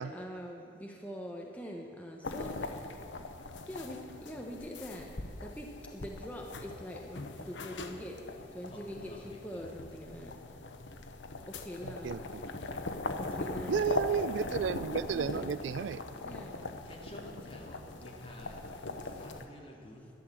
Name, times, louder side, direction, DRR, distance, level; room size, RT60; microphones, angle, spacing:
voice 1, 0.1-3.0 3.7-10.4 11.5-12.2 13.2-13.8 15.1-15.6 16.2-16.7, equal, 10° left, 0 dB, 1.0 m, -44 dB
sound 1, 2.2-19.4, left 2 dB, 75° left, 1.0 m, -40 dB
voice 2, 9.1-10.1 14.1-14.2 16.8-20.1, left 1 dB, 30° left, -1 dB, 2.3 m, -51 dB
voice 3, 13.7-16.0, right 7 dB, 70° right, 17 dB, 0.3 m, -32 dB
12.0 x 10.5 x 7.6 m, 2.7 s
head